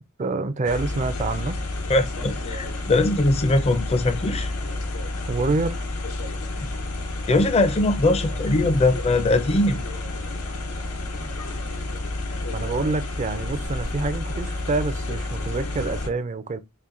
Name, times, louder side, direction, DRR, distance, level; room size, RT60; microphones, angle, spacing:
voice 1, 0.2-1.5 5.3-5.8 11.2-11.4 12.5-16.6, right 3 dB, 30° right, 0.4 m, -27 dB
van stationary, 0.6-16.1, left 2 dB, 90° left, 0.9 m, -30 dB
voice 2, 1.9-4.5 6.6-6.7 7.3-9.8, left 2 dB, 30° left, 0.5 m, -21 dB
4.2 x 2.2 x 3.7 m
head